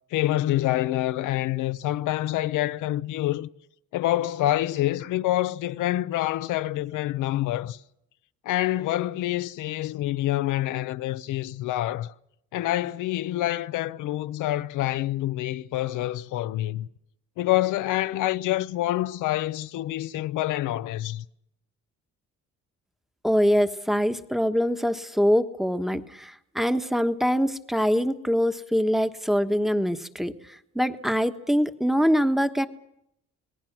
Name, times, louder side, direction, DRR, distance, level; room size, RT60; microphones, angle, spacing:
voice 1, 0.1-3.5 3.9-7.8 8.4-12.1 12.5-16.9 17.4-21.2, left 15 dB, 90° left, 0.8 m, -27 dB
voice 2, 23.2-32.7, equal, ahead, 1.3 m, -24 dB
27.0 x 19.5 x 6.1 m
cardioid pair, 90°, 30 cm